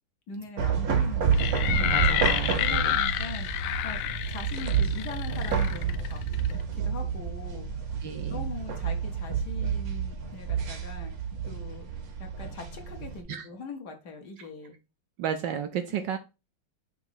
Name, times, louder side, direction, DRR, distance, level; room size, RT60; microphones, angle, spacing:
voice 1, 0.3-4.0 4.3-8.0 8.3-11.1 11.4-11.9 12.2-14.8 15.9-16.2, left 3 dB, 55° left, 4 dB, 1.6 m, -42 dB
sound 1, 0.6-13.2, right 7 dB, 55° right, 1.2 m, -29 dB
sound 2, 1.3-6.6, left 12 dB, 90° left, 1.5 m, -30 dB
voice 2, 1.9-3.0 8.0-8.5 13.3-13.5 15.2-16.2, right 8 dB, 70° right, 8 dB, 1.1 m, -33 dB
6.0 x 3.0 x 5.6 m, 0.28 s
omnidirectional pair, 2.3 m